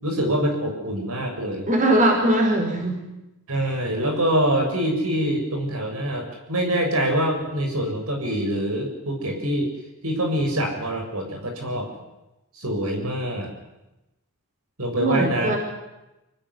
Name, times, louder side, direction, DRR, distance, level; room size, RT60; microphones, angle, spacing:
voice 1, 0.0-1.7 3.5-9.7 10.0-11.9 12.5-13.5 14.8-15.6, right 1 dB, 75° right, 3 dB, 7.1 m, -25 dB
voice 2, 1.7-3.0 15.0-15.6, right 1 dB, 35° right, 2 dB, 5.4 m, -20 dB
26.0 x 19.5 x 9.7 m, 0.96 s
head